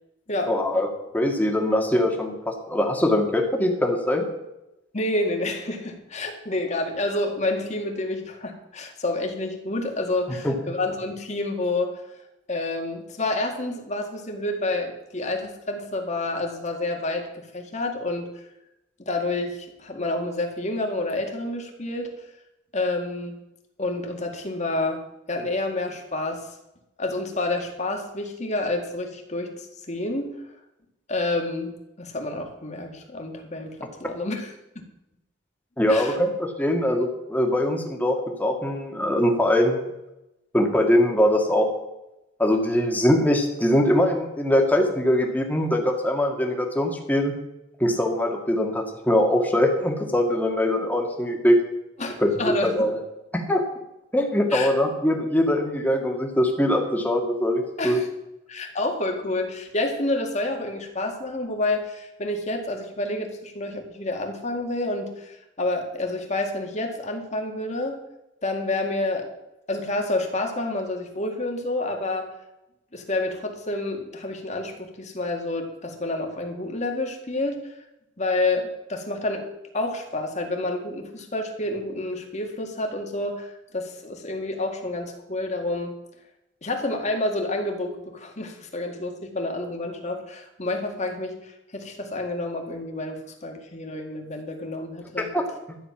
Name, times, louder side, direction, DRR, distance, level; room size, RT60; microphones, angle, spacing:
voice 1, 0.5-0.9 1.1-4.3 10.3-10.6 35.8-39.8 40.5-41.7 42.4-47.3 47.8-51.6 52.2-52.9 53.3-53.6 54.1-58.0 95.2-95.8, left 1 dB, 10° left, 1 dB, 2.0 m, -22 dB
voice 2, 4.9-12.0 12.5-18.4 19.0-22.1 22.7-23.4 23.8-25.0 25.3-26.5 27.0-30.3 31.1-34.9 35.9-36.2 52.0-52.7 54.5-54.7 57.8-58.1 58.5-68.0 68.4-69.3 69.7-72.3 72.9-77.6 78.2-79.5 79.7-86.0 86.6-95.3, left 2 dB, 40° left, 3 dB, 2.1 m, -29 dB
13.0 x 9.6 x 5.9 m, 0.91 s
head